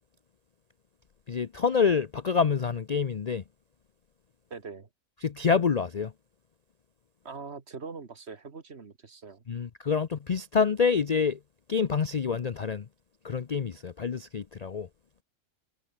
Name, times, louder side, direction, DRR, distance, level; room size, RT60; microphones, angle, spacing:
voice 1, 1.3-3.4 5.2-6.1 9.5-11.4 11.7-12.9 13.2-14.9, left 5 dB, 45° left, 0.5 m, -27 dB
voice 2, 4.5-4.9 7.2-9.4, right 4 dB, 50° right, 1.9 m, -42 dB
omnidirectional pair, 1.5 m